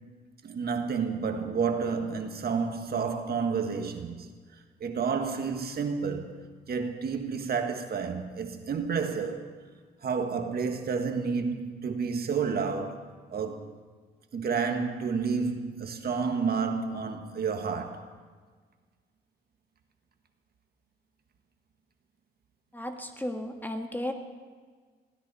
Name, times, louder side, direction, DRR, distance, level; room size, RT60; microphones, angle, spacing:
voice 1, 0.4-4.3 4.8-6.4 6.7-9.5 10.0-13.0 13.3-13.7 14.3-18.1, right 5 dB, 50° right, 1.7 m, -30 dB
voice 2, 22.7-24.1, left 1 dB, 10° left, 1.5 m, -34 dB
20.5 x 16.0 x 4.3 m
cardioid pair, 90°, 20 cm